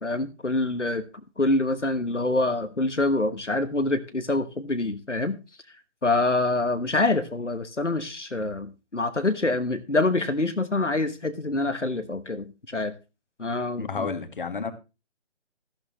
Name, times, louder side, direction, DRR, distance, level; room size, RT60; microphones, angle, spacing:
voice 1, 0.0-1.0 1.4-5.4 6.0-12.9 13.4-14.1, left 2 dB, 90° left, 11 dB, 1.3 m, -26 dB
voice 2, 13.8-14.7, left 5 dB, 45° left, 8 dB, 1.7 m, -31 dB
13.5 x 12.0 x 3.1 m, 0.29 s
figure-of-eight pair, 145°, 35 cm